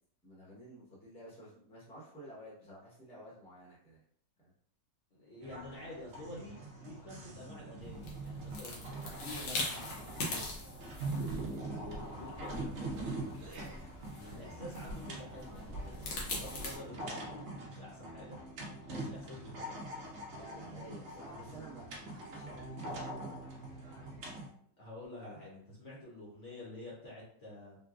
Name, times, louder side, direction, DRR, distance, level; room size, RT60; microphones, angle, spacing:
voice 1, 0.2-4.0 4.4-4.5 14.2-14.6 20.3-24.5, right 1 dB, 5° left, -6 dB, 0.7 m, -53 dB
voice 2, 5.1-8.8 9.2-9.9 10.1-10.5 11.7-13.1 14.1-18.4 18.8-19.8 20.7-21.0 24.8-27.8, left 1 dB, 50° left, -5 dB, 1.0 m, -49 dB
sound 1, 5.4-24.5, right 2 dB, 70° right, 0.6 m, -43 dB
sound 2, 7.8-16.8, left 2 dB, 80° left, 1.5 m, -42 dB
3.8 x 2.2 x 2.4 m, 0.62 s
omnidirectional pair, 1.9 m